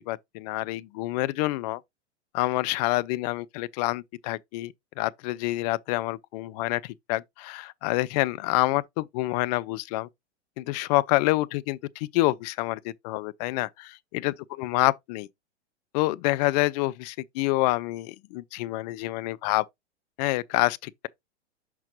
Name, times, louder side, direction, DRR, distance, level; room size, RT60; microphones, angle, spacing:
voice 1, 0.1-1.8 2.3-10.1 10.6-15.3 15.9-19.6 20.2-20.9, left 19 dB, 35° left, 0.4 m, -27 dB
6.0 x 5.7 x 3.0 m
hypercardioid pair, 100°, 35 cm